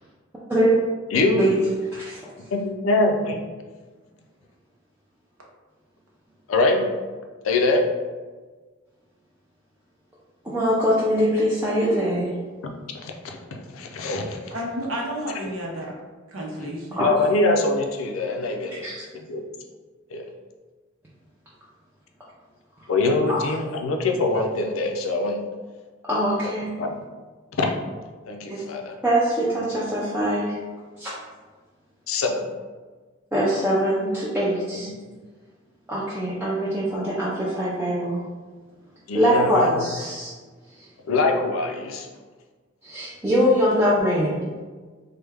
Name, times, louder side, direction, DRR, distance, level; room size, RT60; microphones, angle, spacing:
voice 1, 1.1-1.5 2.5-3.4 6.5-6.8 7.4-7.8 12.9-14.4 17.0-18.9 19.1-19.4 20.1-20.3 22.9-25.4 26.8-26.9 27.6-27.7 28.3-28.9 32.1-32.4 39.1-39.8 41.1-42.1, left 2 dB, 80° left, 3 dB, 0.5 m, -23 dB
voice 2, 1.9-2.3 10.4-12.3 17.0-17.1 18.8-19.1 23.3-23.4 26.0-26.7 28.5-28.6 29.0-30.6 31.0-31.1 33.3-34.9 35.9-38.2 39.1-40.3 42.8-44.5, equal, 10° right, -8 dB, 0.5 m, -23 dB
voice 3, 14.5-15.9 16.3-17.1, equal, 75° right, -2 dB, 0.7 m, -31 dB
3.3 x 2.2 x 3.3 m, 1.4 s
head